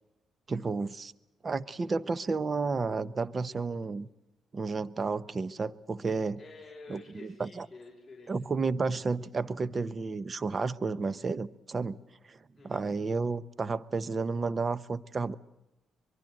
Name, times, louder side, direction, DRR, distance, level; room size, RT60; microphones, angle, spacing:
voice 1, 0.5-1.1 1.4-4.1 4.5-6.4 6.9-7.7 8.3-12.0 12.2-12.4 12.6-15.3, right 4 dB, 35° right, 18 dB, 0.9 m, -32 dB
voice 2, 6.4-8.3 12.6-12.8, left 3 dB, 15° left, -2 dB, 5.8 m, -49 dB
24.0 x 22.5 x 7.8 m, 0.95 s
cardioid pair, 90°, 0 cm